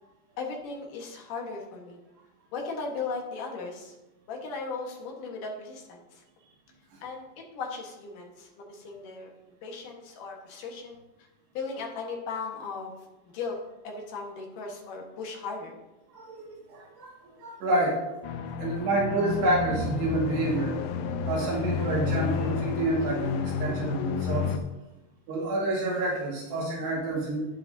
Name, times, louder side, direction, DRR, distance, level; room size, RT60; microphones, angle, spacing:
voice 1, 0.4-2.0 2.5-3.9 4.3-6.2 7.0-7.3 7.5-9.3 9.6-11.0 11.5-12.9 13.3-13.6 13.8-15.7, left 4 dB, 60° left, 0 dB, 2.5 m, -37 dB
voice 2, 16.1-18.0 18.6-20.8 21.3-24.5 25.3-27.5, right 2 dB, 80° right, -4 dB, 4.1 m, -28 dB
sound 1, 18.2-24.6, left 7 dB, 85° left, 2.1 m, -31 dB
10.5 x 10.0 x 2.7 m, 1.0 s
omnidirectional pair, 4.8 m